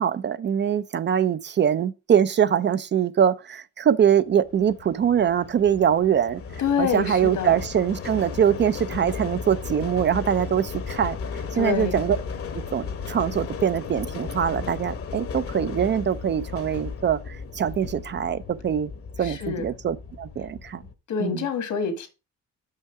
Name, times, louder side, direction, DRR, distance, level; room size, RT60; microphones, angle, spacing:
voice 1, 0.0-6.4 6.8-11.2 11.5-12.2 12.5-18.9 19.2-20.8 21.2-21.4, right 9 dB, 40° right, 0.4 m, -23 dB
sound 1, 4.4-20.9, left 5 dB, 50° left, 1.0 m, -35 dB
voice 2, 6.6-7.6 11.5-12.0 19.2-19.7 21.1-22.1, left 7 dB, 75° left, 1.7 m, -26 dB
5.7 x 5.5 x 4.7 m
cardioid pair, 90°, 30 cm